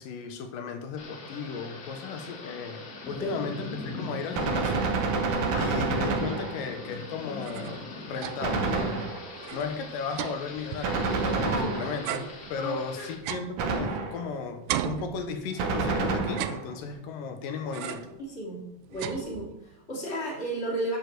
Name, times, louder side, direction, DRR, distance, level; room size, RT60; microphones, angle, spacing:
voice 1, 0.0-4.8 5.6-9.0 9.5-18.1, left 5 dB, 80° left, 6 dB, 2.6 m, -35 dB
Thunder / Rain, 1.0-13.1, left 2 dB, 50° left, 1.2 m, -41 dB
Gunshot gunfire, 4.3-6.9 8.4-9.5 10.8-12.3 13.6-14.4 15.6-16.7, right 4 dB, 70° right, 2.4 m, -28 dB
voice 2, 5.4-5.7 11.4-11.8 12.5-13.1 18.2-18.6 18.9-21.0, right 1 dB, 20° left, -4 dB, 2.9 m, -33 dB
sound 1, 7.2-8.7 9.0-9.1 9.4-11.6 12.0-14.3 14.7-15.8 16.2-17.2 17.7-18.2 18.6-19.7, right 12 dB, 85° right, 1.6 m, -37 dB
10.0 x 5.1 x 6.6 m, 0.87 s
omnidirectional pair, 4.0 m